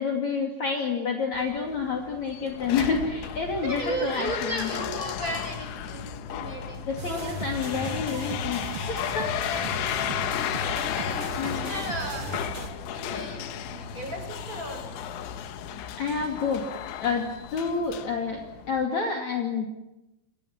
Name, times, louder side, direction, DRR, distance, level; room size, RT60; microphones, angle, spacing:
voice 1, 0.0-4.7 6.9-9.7 11.4-11.8 16.0-16.6 17.0-19.7, left 5 dB, 45° left, 2 dB, 3.4 m, -29 dB
sound 1, 1.3-18.8, left 10 dB, 85° left, 3.8 m, -34 dB
voice 2, 3.6-7.2 10.4-12.5 12.9-15.1 15.7-15.8, right 2 dB, 20° right, 4 dB, 6.8 m, -35 dB
sound 2, 7.0-12.7, right 3 dB, 40° right, 2.7 m, -36 dB
28.0 x 27.5 x 7.4 m, 0.92 s
omnidirectional pair, 5.2 m